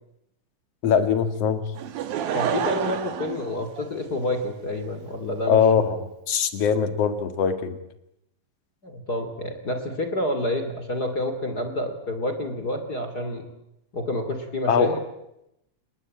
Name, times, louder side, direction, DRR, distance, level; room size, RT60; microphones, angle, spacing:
voice 1, 0.8-1.6 5.5-7.8 14.7-15.0, left 7 dB, 50° left, 10 dB, 2.7 m, -22 dB
Laughter / Crowd, 1.8-4.4 5.1-5.2, right 9 dB, 85° right, 3.4 m, -29 dB
voice 2, 2.3-5.6 8.8-13.4 13.9-15.0, left 1 dB, 30° left, 7 dB, 2.8 m, -28 dB
29.5 x 20.5 x 8.7 m, 0.84 s
omnidirectional pair, 4.0 m